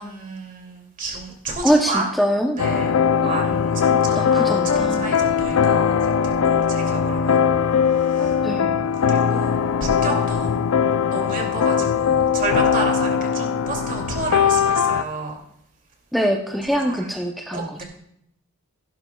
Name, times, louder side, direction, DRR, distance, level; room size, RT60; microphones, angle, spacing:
voice 1, 0.0-2.1 2.6-2.9 3.2-6.1 6.4-7.4 7.9-8.3 9.1-10.6 11.0-15.4 16.8-17.1 17.5-17.8, right 3 dB, 40° right, 1 dB, 2.5 m, -31 dB
voice 2, 1.6-2.6 3.2-3.4 4.2-5.1 8.4-8.8 10.0-10.2 16.1-17.8, equal, ahead, 1 dB, 0.6 m, -23 dB
sound 1, 2.6-15.0, left 7 dB, 70° left, 0.4 m, -20 dB
15.5 x 11.5 x 2.3 m, 0.73 s
head